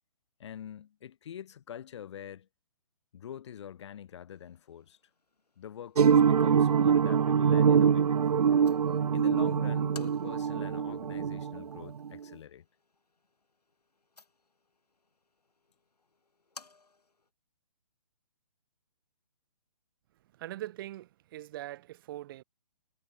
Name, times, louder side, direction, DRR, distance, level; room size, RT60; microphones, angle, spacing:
voice 1, 0.4-2.5 3.1-5.0 5.6-8.2 9.1-12.7, left 9 dB, 45° left, 0.9 m, -45 dB
sound 1, 4.3-17.3, left 3 dB, 80° left, 4.9 m, -59 dB
sound 2, 6.0-12.2, right 7 dB, 75° right, 0.4 m, -24 dB
voice 2, 20.3-22.4, right 14 dB, 35° right, 2.9 m, -42 dB
figure-of-eight pair, 140°, 20 cm